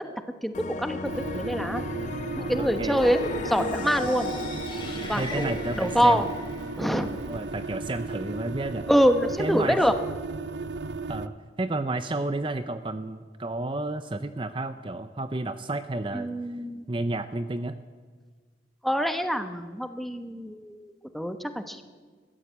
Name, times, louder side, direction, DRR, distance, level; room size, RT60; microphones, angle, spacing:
voice 1, 0.4-1.8 2.4-4.3 5.1-6.3 6.8-7.2 8.9-9.9 16.1-16.9 18.8-21.8, equal, ahead, 8 dB, 1.0 m, -25 dB
sound 1, 0.5-8.2, left 3 dB, 40° left, 0.5 m, -38 dB
sound 2, 1.0-11.3, right 3 dB, 70° right, 0.7 m, -35 dB
voice 2, 2.6-3.0 5.2-6.3 7.3-8.9 9.4-9.8 11.1-16.3 16.9-17.8, right 2 dB, 30° right, 10 dB, 0.6 m, -31 dB
sound 3, 3.1-7.1, left 2 dB, 25° left, 5.8 m, -37 dB
21.5 x 15.0 x 8.3 m, 1.5 s
head